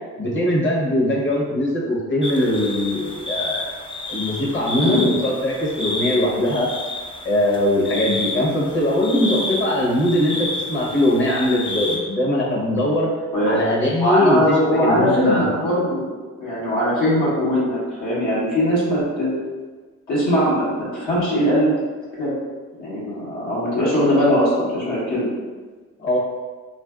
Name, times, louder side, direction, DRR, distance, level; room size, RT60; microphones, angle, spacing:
voice 1, 0.2-3.7 4.1-6.7 7.2-13.1 13.4-15.5 26.0-26.2, left 1 dB, 40° left, -3 dB, 0.9 m, -21 dB
sound 1, 2.2-12.0, left 2 dB, 15° left, 0.4 m, -30 dB
voice 2, 14.0-16.1 16.4-19.3 20.1-21.7 22.2-22.3 22.8-25.3, equal, 80° left, -9 dB, 1.3 m, -20 dB
3.2 x 2.5 x 2.3 m, 1.4 s
cardioid pair, 90°, 30 cm